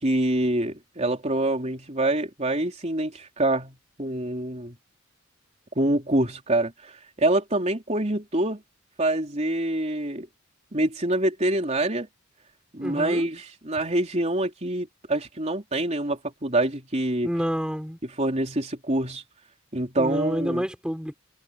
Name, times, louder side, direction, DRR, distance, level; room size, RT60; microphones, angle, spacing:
voice 1, 0.0-4.8 5.8-6.7 7.2-8.6 9.0-10.3 10.7-12.1 12.7-17.3 18.2-19.2 19.7-20.6, right 1 dB, 30° right, 3.7 m, -25 dB
voice 2, 12.8-13.3 17.2-18.0 20.0-21.1, equal, 5° right, 3.6 m, -29 dB
head